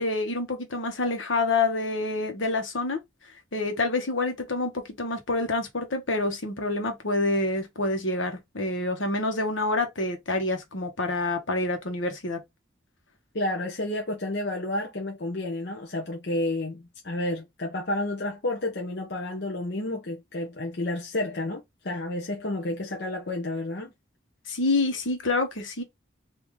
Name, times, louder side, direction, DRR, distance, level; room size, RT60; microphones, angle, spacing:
voice 1, 0.0-3.0 3.5-12.4 24.5-25.8, left 2 dB, 80° left, 1.3 m, -27 dB
voice 2, 13.3-23.9, left 1 dB, 55° left, 0.8 m, -31 dB
3.7 x 2.8 x 3.2 m
head